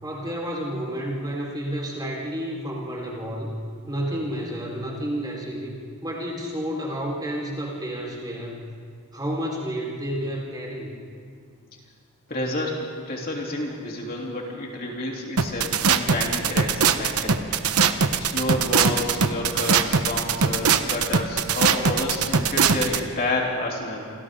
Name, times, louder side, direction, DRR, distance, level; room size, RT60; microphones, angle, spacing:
voice 1, 0.0-3.6 3.9-5.7 6.0-8.6 9.1-10.9, equal, 20° right, -3 dB, 4.5 m, -30 dB
voice 2, 12.3-17.4 18.2-24.1, left 1 dB, 40° left, -2 dB, 3.5 m, -29 dB
sound 1, 15.4-23.0, right 6 dB, 85° right, 1.0 m, -21 dB
28.0 x 26.5 x 3.9 m, 2.2 s
head